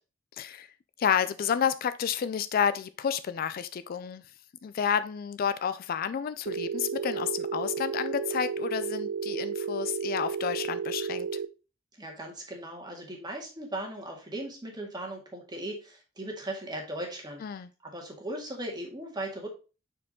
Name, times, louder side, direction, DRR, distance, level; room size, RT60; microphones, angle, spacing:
voice 1, 0.4-0.7 1.0-4.2 4.6-11.3 17.4-17.7, left 7 dB, 50° left, 0.3 m, -30 dB
Telephone, 6.5-11.5, right 6 dB, 75° right, 0.4 m, -33 dB
voice 2, 12.0-17.4 17.8-19.5, right 1 dB, 20° right, 1.9 m, -38 dB
6.1 x 4.6 x 3.6 m
head